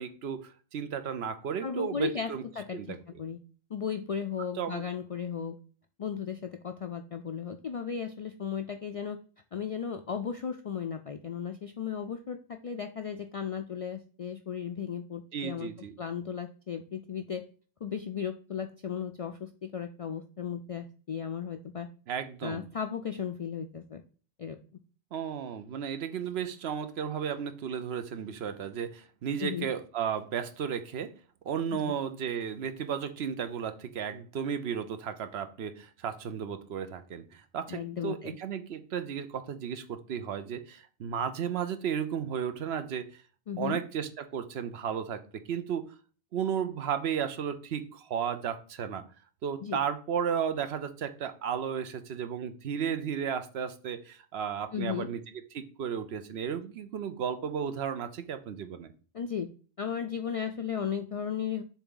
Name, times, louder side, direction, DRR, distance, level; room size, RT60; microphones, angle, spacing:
voice 1, 0.0-2.4 2.7-3.0 4.6-4.8 15.3-15.9 22.1-22.6 25.1-31.1 31.4-43.1 43.6-45.2 45.5-45.8 46.3-49.0 49.4-55.2 55.5-58.9, right 8 dB, 75° right, 10 dB, 0.9 m, -34 dB
voice 2, 1.6-2.3 2.6-3.4 3.7-5.6 6.0-9.2 9.5-17.5 17.8-21.9 22.4-24.0 24.4-24.6 29.4-29.7 31.7-31.8 37.7-38.4 43.5-43.8 49.6-49.8 54.7-55.1 59.1-59.5 59.8-61.6, left 7 dB, 60° left, 7 dB, 0.3 m, -35 dB
7.1 x 3.5 x 3.8 m, 0.39 s
omnidirectional pair, 1.1 m